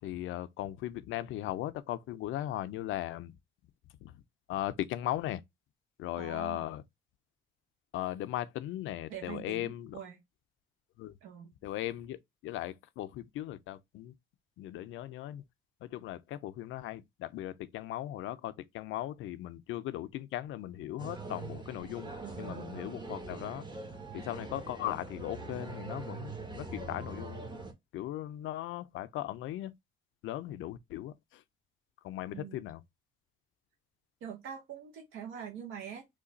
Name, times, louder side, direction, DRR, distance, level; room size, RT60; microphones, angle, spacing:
voice 1, 0.0-3.4 4.0-4.2 4.5-5.4 6.0-6.8 7.9-10.0 11.0-11.2 11.6-14.1 14.6-15.4 15.8-22.1 22.4-23.7 24.1-27.5 27.9-29.7 30.2-31.4 32.0-32.8, left 14 dB, 80° left, 0.4 m, -38 dB
voice 2, 6.2-6.7 9.1-10.2 11.2-11.5 22.2-22.7 32.3-32.6 34.2-36.1, right 8 dB, 85° right, 0.7 m, -44 dB
sound 1, 21.0-27.7, right 3 dB, 20° right, 0.8 m, -43 dB
3.1 x 2.2 x 3.8 m
cardioid pair, 90°, 20 cm